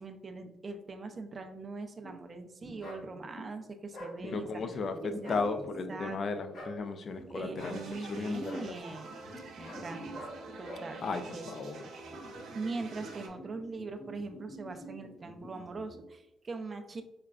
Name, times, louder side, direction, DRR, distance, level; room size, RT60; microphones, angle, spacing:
voice 1, 0.0-5.6 5.9-6.2 7.3-10.2 10.6-11.5 12.5-17.0, right 3 dB, 35° right, 6 dB, 0.4 m, -42 dB
sound 1, 2.0-2.1 2.6-3.5 4.2-6.3 7.1-8.3 9.2-11.0 12.0-16.0, right 1 dB, 5° left, 0.8 m, -48 dB
sound 2, 2.8-3.0 3.9-4.2 5.2-5.5 6.5-6.8 7.6-7.8 8.5-8.7 9.6-9.9 10.1-10.4 10.6-10.9, equal, 70° left, 1.5 m, -44 dB
voice 2, 4.2-7.8 8.1-8.7 11.0-11.8, left 4 dB, 50° left, 8 dB, 0.3 m, -35 dB
sound 3, 7.6-13.3, right 3 dB, 85° right, 0.7 m, -47 dB
4.8 x 2.2 x 2.3 m, 0.93 s
cardioid pair, 90°, 0 cm